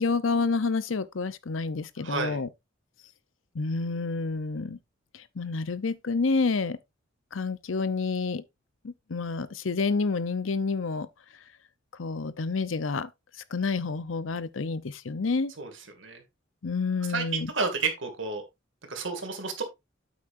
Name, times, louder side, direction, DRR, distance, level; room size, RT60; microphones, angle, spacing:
voice 1, 0.0-2.5 3.5-4.8 5.4-6.8 7.3-8.4 8.8-11.1 12.0-13.1 13.5-15.5 16.6-17.5, left 4 dB, 85° left, 0.7 m, -29 dB
voice 2, 2.0-2.4 15.6-15.7 16.0-16.2 17.1-18.4 18.9-19.6, right 4 dB, 70° right, 2.3 m, -31 dB
8.6 x 8.3 x 2.6 m
head